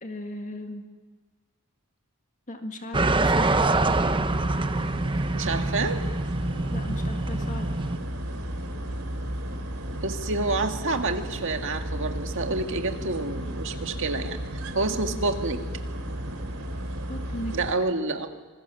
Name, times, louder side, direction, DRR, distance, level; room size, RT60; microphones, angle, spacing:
voice 1, 0.0-0.9 2.5-3.8 6.7-7.7 15.1-15.2 17.1-17.5, left 1 dB, 35° left, 5 dB, 1.8 m, -37 dB
sound 1, 2.9-8.0, right 2 dB, 25° right, 0.9 m, -25 dB
sound 2, 4.2-17.7, equal, 75° right, 3.1 m, -33 dB
voice 2, 5.3-6.0 9.9-15.6 17.5-18.3, right 3 dB, 60° right, 5 dB, 1.9 m, -28 dB
26.0 x 20.5 x 7.0 m, 1.4 s
head